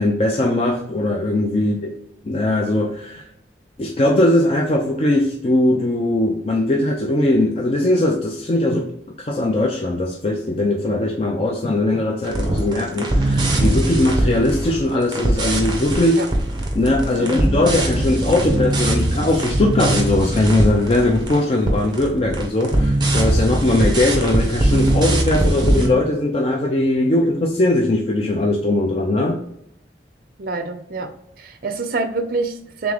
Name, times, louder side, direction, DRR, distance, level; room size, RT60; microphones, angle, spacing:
voice 1, 0.0-1.9 2.2-3.2 3.8-8.9 9.2-16.2 16.7-29.4, left 1 dB, 35° left, 0 dB, 0.4 m, -20 dB
sound 1, 12.2-21.4 21.7-25.9, right 1 dB, 25° right, 0.8 m, -21 dB
voice 2, 30.4-31.1 31.4-32.9, right 3 dB, 50° right, 7 dB, 0.5 m, -26 dB
3.7 x 3.5 x 3.3 m, 0.74 s
head